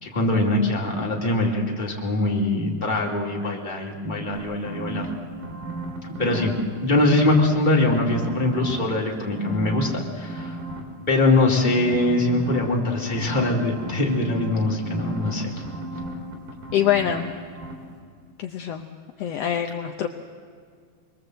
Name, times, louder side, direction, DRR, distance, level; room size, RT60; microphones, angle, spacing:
voice 1, 0.0-5.1 6.2-6.6 6.8-10.6 11.1-15.6, left 2 dB, 15° left, -2 dB, 2.7 m, -22 dB
sound 1, 4.3-6.6 6.9-9.0 9.3-10.8 11.7-17.3 17.6-17.7, right 2 dB, 80° right, 4.7 m, -35 dB
voice 2, 16.7-17.3 18.4-18.9 19.2-20.1, left 10 dB, 75° left, 4 dB, 1.5 m, -25 dB
27.0 x 22.0 x 7.9 m, 2.1 s
omnidirectional pair, 3.9 m